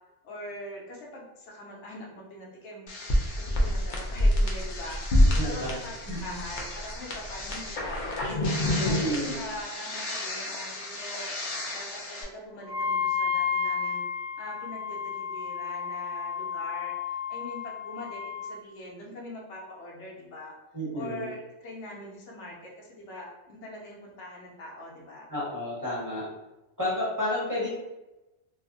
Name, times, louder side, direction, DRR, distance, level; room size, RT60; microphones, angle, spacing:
voice 1, 0.2-2.9 3.2-14.0 14.4-20.6 20.9-25.3, left 1 dB, 80° left, -2 dB, 1.0 m, -42 dB
sound 1, 2.9-12.2, left 1 dB, 55° left, 0.6 m, -28 dB
voice 2, 5.4-5.7 6.1-6.3 8.8-9.3 20.7-21.2 25.3-26.2 26.8-27.7, left 1 dB, 20° right, -9 dB, 0.8 m, -30 dB
Wind instrument woodwind instrument, 12.7-18.5, left 6 dB, 70° right, 0.8 m, -32 dB
2.6 x 2.4 x 2.5 m, 1.0 s
omnidirectional pair, 1.2 m